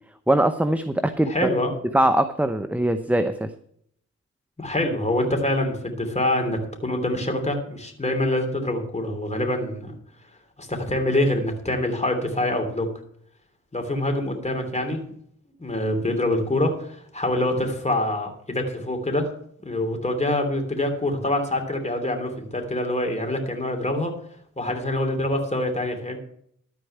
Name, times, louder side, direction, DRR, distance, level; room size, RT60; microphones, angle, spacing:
voice 1, 0.3-1.3 1.9-3.5, right 1 dB, 5° right, 9 dB, 0.8 m, -21 dB
voice 2, 1.3-1.7 4.6-9.9 10.6-12.9 13.7-15.0 15.6-19.3 19.6-24.1 24.6-26.2, left 1 dB, 20° left, 4 dB, 3.1 m, -25 dB
13.0 x 4.6 x 8.7 m, 0.67 s
cardioid pair, 45°, 32 cm